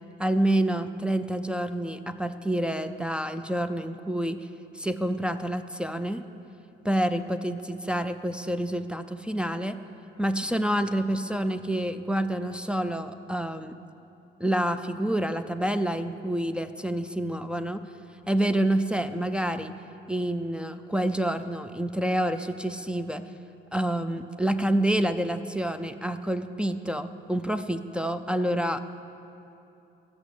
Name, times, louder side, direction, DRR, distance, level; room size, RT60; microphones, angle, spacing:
voice 1, 0.2-4.5 4.7-6.2 6.8-9.8 10.2-13.8 14.4-17.8 18.3-19.7 20.1-23.2 23.7-28.8, right 1 dB, 5° right, 6 dB, 0.4 m, -28 dB
14.5 x 6.3 x 8.5 m, 2.8 s
cardioid pair, 90°, 20 cm